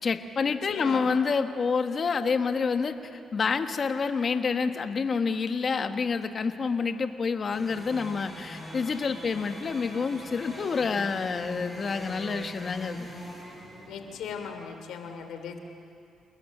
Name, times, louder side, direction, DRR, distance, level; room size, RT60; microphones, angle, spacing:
voice 1, 0.0-13.1, left 5 dB, 45° left, 7 dB, 1.4 m, -28 dB
voice 2, 0.7-1.0 13.9-15.6, left 6 dB, 80° left, 6 dB, 3.0 m, -38 dB
sound 1, 7.5-14.5, equal, 5° right, 7.5 m, -42 dB
28.5 x 19.5 x 7.4 m, 2.5 s
cardioid pair, 90°, 0 cm